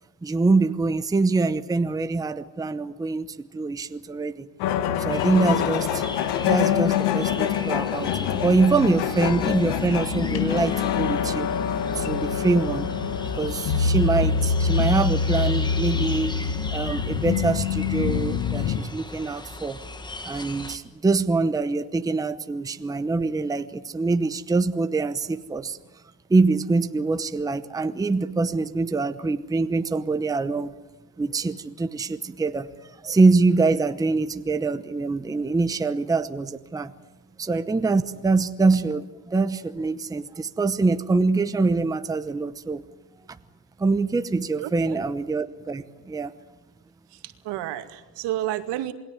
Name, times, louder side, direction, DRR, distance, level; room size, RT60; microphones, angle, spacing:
voice 1, 0.2-4.5 5.0-6.0 6.4-11.5 11.9-12.9 13.4-16.3 16.7-19.8 20.2-25.8 26.3-30.7 31.2-36.9 37.4-42.8 43.8-46.3, right 3 dB, 10° right, 10 dB, 0.9 m, -24 dB
sound 1, 4.6-18.8, left 7 dB, 80° left, 2.4 m, -25 dB
sound 2, 5.1-20.8, left 2 dB, 10° left, 1.7 m, -39 dB
voice 2, 44.6-45.0 47.1-48.9, right 13 dB, 75° right, 9 dB, 2.3 m, -31 dB
27.5 x 21.5 x 9.6 m, 1.0 s
cardioid pair, 160°, 42 cm